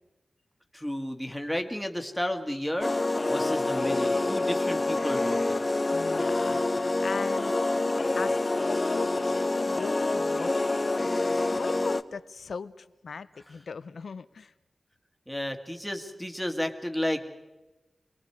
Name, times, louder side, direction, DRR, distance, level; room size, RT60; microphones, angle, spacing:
voice 1, 0.7-2.9 3.3-5.6 15.3-17.3, left 1 dB, ahead, 4 dB, 2.0 m, -32 dB
sound 1, 2.8-12.0, left 2 dB, 30° left, 0.7 m, -27 dB
voice 2, 5.9-11.2 11.5-14.5, left 5 dB, 80° left, 13 dB, 0.8 m, -39 dB
27.5 x 20.5 x 4.9 m, 1.1 s
wide cardioid pair, 110°, 0 cm